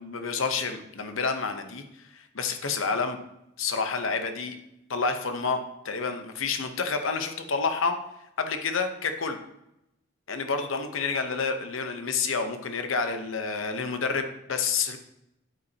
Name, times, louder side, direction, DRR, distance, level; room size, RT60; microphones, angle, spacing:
voice 1, 0.0-1.8 2.1-3.2 3.6-4.6 4.9-8.0 8.4-9.4 10.3-15.0, left 4 dB, 70° left, 7 dB, 0.8 m, -29 dB
8.4 x 8.2 x 2.8 m, 0.84 s
head